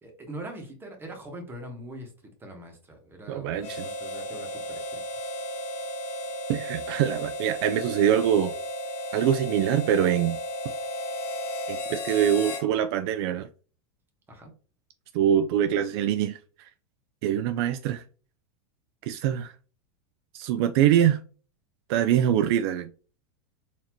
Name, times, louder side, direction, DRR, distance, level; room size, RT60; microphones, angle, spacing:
voice 1, 0.0-5.3 14.3-14.5, right 1 dB, 15° right, 1.3 m, -42 dB
voice 2, 3.3-3.8 6.5-8.5 9.1-10.4 11.7-13.5 15.1-16.7 17.2-18.0 19.0-19.5 20.3-21.2 21.9-22.9, right 10 dB, 60° right, 0.4 m, -24 dB
Harmonica, 3.6-12.7, left 1 dB, 55° left, 1.2 m, -34 dB
4.1 x 2.8 x 3.0 m
supercardioid pair, 125°, 15 cm